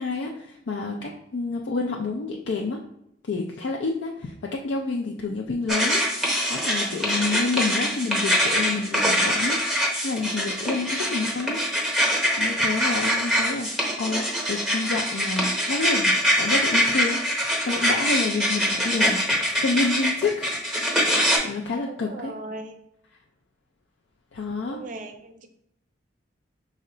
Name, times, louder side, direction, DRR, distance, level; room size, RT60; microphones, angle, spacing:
voice 1, 0.0-2.8 3.3-6.0 6.5-9.6 10.0-11.6 12.3-13.7 14.0-20.5 21.1-22.3 24.3-24.8, left 3 dB, 70° left, 0 dB, 0.4 m, -28 dB
sound 1, 5.7-21.4, equal, ahead, 0.8 m, -24 dB
voice 2, 21.9-22.7 24.7-25.5, right 2 dB, 45° right, 7 dB, 0.4 m, -38 dB
5.4 x 2.1 x 3.8 m, 0.77 s
head